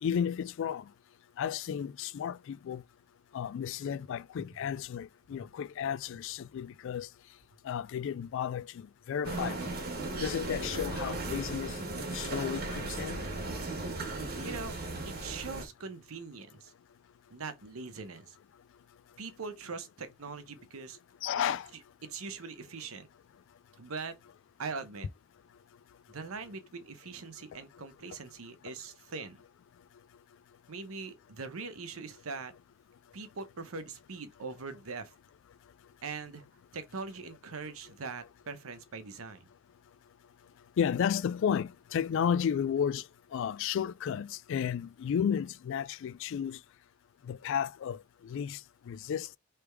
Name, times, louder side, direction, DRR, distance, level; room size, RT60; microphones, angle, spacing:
voice 1, 0.0-0.9 1.4-2.8 3.3-7.1 7.6-8.8 9.1-9.7 10.2-11.8 12.1-13.2 21.2-21.7 40.8-43.1 43.3-46.6 47.2-48.6 48.9-49.4, left 8 dB, 65° left, 0.3 m, -33 dB
sound 1, 9.2-15.6, right 2 dB, 50° right, 1.4 m, -36 dB
voice 2, 14.4-14.8 15.0-16.7 17.3-18.4 19.2-21.0 21.7-23.1 23.8-24.2 24.6-25.1 26.1-29.4 30.7-32.5 33.1-35.1 36.0-36.4 36.7-39.5, right 4 dB, 80° right, 0.8 m, -42 dB
3.4 x 3.3 x 4.5 m
head